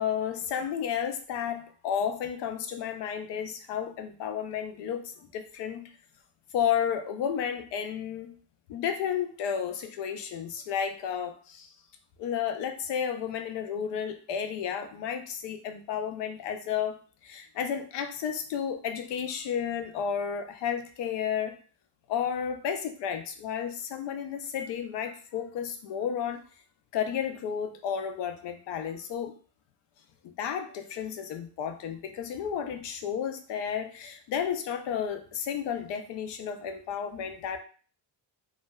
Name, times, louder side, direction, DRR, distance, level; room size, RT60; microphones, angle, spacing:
voice 1, 0.0-5.9 6.5-8.4 8.7-11.7 12.2-21.6 22.1-26.4 26.9-29.3 30.2-37.6, left 8 dB, 70° left, 7 dB, 0.5 m, -32 dB
3.2 x 2.0 x 2.2 m, 0.39 s
cardioid pair, 125°, 45 cm